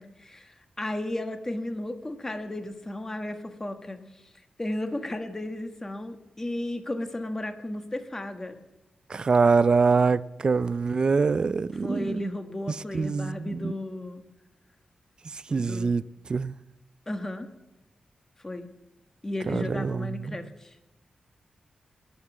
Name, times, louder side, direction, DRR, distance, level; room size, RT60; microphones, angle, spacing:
voice 1, 0.0-4.0 4.6-8.6 11.8-14.2 15.5-16.0 17.1-17.5 18.4-18.7 19.2-20.8, left 1 dB, 20° left, 1.3 m, -34 dB
voice 2, 9.1-12.3 12.7-13.7 15.3-16.0 16.3-16.5 19.5-20.4, right 4 dB, 40° right, 0.4 m, -24 dB
21.0 x 7.0 x 7.3 m
wide cardioid pair, 130°, 2 cm